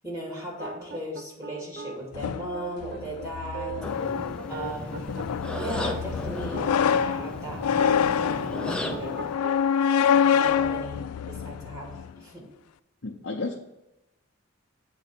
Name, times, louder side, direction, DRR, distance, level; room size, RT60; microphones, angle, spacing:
voice 1, 0.0-3.8 4.5-7.6 8.0-9.3 10.1-12.5, right 1 dB, 15° right, -3 dB, 2.2 m, -38 dB
sound 1, 0.6-7.3 7.7-9.5, right 3 dB, 45° right, 0.7 m, -38 dB
sound 2, 2.1-12.1, left 7 dB, 90° left, 0.3 m, -26 dB
sound 3, 3.8-9.4, left 1 dB, 5° left, 0.4 m, -36 dB
voice 2, 13.0-13.6, left 3 dB, 60° left, -2 dB, 0.8 m, -32 dB
8.1 x 4.0 x 5.9 m, 0.92 s
head